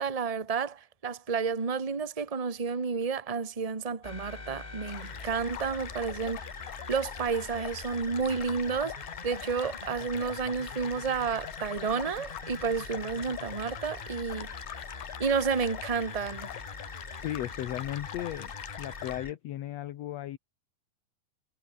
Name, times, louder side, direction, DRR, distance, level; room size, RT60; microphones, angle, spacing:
voice 1, 0.0-6.4 6.9-9.0 9.2-14.5 15.2-16.5, right 5 dB, 25° right, 0.8 m, -31 dB
sound 1, 4.0-19.3, left 3 dB, 25° left, 0.8 m, -43 dB
sound 2, 4.9-19.2, left 15 dB, 80° left, 2.6 m, -44 dB
voice 2, 17.2-18.5 18.8-20.4, left 13 dB, 65° left, 1.9 m, -35 dB
omnidirectional pair, 3.8 m